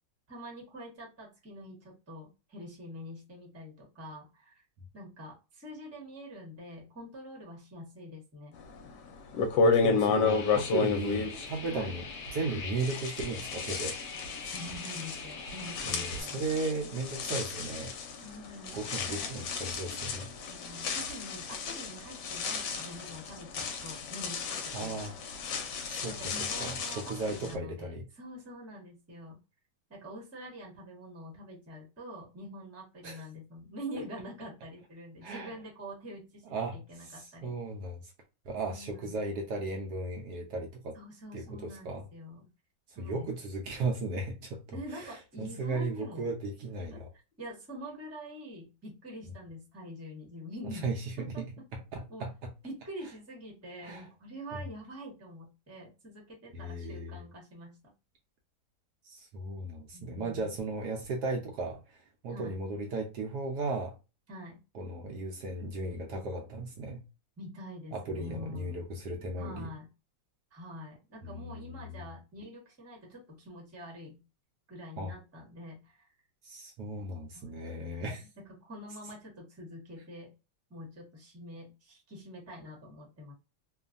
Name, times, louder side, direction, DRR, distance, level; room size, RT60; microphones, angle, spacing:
voice 1, 0.3-4.6 4.9-8.6 11.7-12.0 14.4-16.5 18.2-19.3 20.5-25.0 26.0-29.4 29.9-37.5 38.7-39.1 40.9-42.5 42.9-43.4 44.7-46.3 46.9-47.0 47.4-50.9 51.2-51.4 52.1-52.2 52.6-57.9 59.9-60.5 62.3-62.6 64.3-64.6 67.4-68.9 69.4-69.9 70.5-74.2 74.7-76.0 77.3-80.3 80.7-83.3, equal, 10° right, 0.7 m, -45 dB
sound 1, 8.8-8.9 9.3-12.5 12.8-27.5, left 4 dB, 75° left, 1.1 m, -32 dB
voice 2, 9.6-12.1 12.3-14.0 15.8-17.9 18.7-20.3 24.7-25.1 25.9-26.2 26.6-28.1 33.0-33.2 35.2-35.5 36.5-38.1 38.4-41.0 41.3-42.1 43.0-47.1 50.7-51.4 51.7-52.5 53.8-54.1 56.5-57.2 59.0-63.9 64.7-67.0 67.9-69.7 71.2-72.0 75.0-75.1 76.4-78.3, right 2 dB, 75° right, 1.1 m, -36 dB
sound 2, 10.2-16.2, left 4 dB, 55° left, 0.8 m, -43 dB
3.0 x 2.2 x 2.5 m
omnidirectional pair, 2.0 m